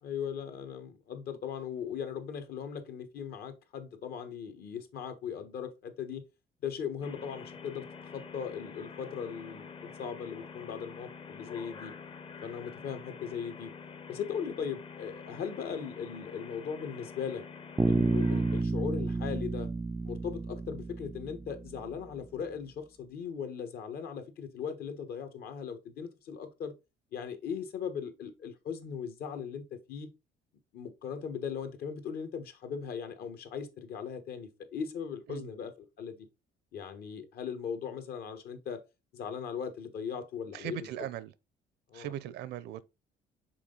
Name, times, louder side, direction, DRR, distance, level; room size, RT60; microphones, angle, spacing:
voice 1, 0.0-6.2 6.6-11.9 12.4-13.7 14.1-17.4 17.8-19.7 20.0-26.7 27.1-29.6 29.9-30.1 30.7-36.2 36.7-38.8 39.1-40.9 41.9-42.1, left 7 dB, 65° left, 1.4 m, -38 dB
sound 1, 7.0-18.6, left 5 dB, 30° left, 0.7 m, -47 dB
Bass guitar, 17.8-21.8, right 3 dB, 10° right, 0.4 m, -30 dB
voice 2, 40.5-41.3 41.9-42.9, right 12 dB, 80° right, 0.6 m, -39 dB
6.0 x 3.9 x 3.9 m
cardioid pair, 110°, 17 cm